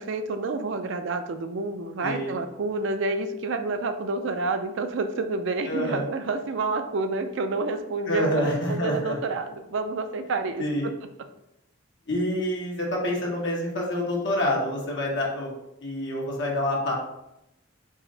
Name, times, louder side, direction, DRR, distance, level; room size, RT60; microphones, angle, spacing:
voice 1, 0.0-10.9, right 3 dB, 65° right, 8 dB, 0.4 m, -29 dB
voice 2, 2.0-2.4 5.7-6.1 8.1-9.2 10.6-10.9 12.1-15.5 15.8-16.9, left 1 dB, 60° left, -2 dB, 1.2 m, -27 dB
4.8 x 2.5 x 3.9 m, 0.85 s
head